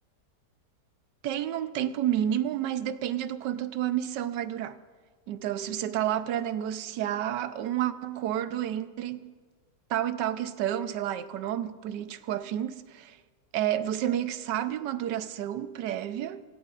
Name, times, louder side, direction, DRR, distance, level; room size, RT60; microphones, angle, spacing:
voice 1, 1.2-4.8 5.3-9.3 9.9-13.2 13.5-16.4, right 11 dB, 70° right, 1.3 m, -30 dB
27.0 x 16.0 x 2.5 m
omnidirectional pair, 2.0 m